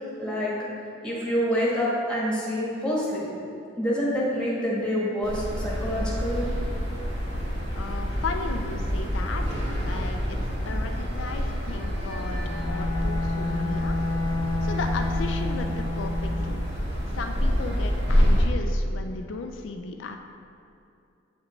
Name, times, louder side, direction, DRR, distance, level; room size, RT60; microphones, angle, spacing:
voice 1, 0.2-0.5 1.0-3.2 3.8-6.5, equal, 5° left, -6 dB, 1.4 m, -27 dB
sound 1, 5.2-18.4, equal, 60° right, 1.5 m, -27 dB
voice 2, 7.8-10.4 10.7-14.0 14.6-16.6 17.1-20.2, left 4 dB, 75° left, 5 dB, 0.4 m, -35 dB
Bowed string instrument, 12.3-16.6, left 2 dB, 85° right, 1.5 m, -30 dB
8.0 x 5.1 x 3.1 m, 2.6 s
head